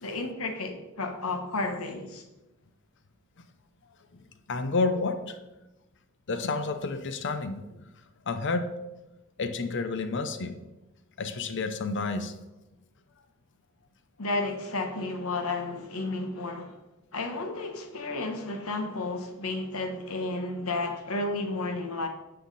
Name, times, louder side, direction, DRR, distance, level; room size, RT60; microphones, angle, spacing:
voice 1, 0.0-2.2 14.2-16.8 17.1-22.1, left 2 dB, 85° left, 1.2 m, -32 dB
voice 2, 4.5-5.4 6.3-7.9 8.3-8.7 9.4-10.6 11.2-12.3, left 3 dB, 60° left, 0.7 m, -30 dB
10.0 x 5.7 x 4.1 m
head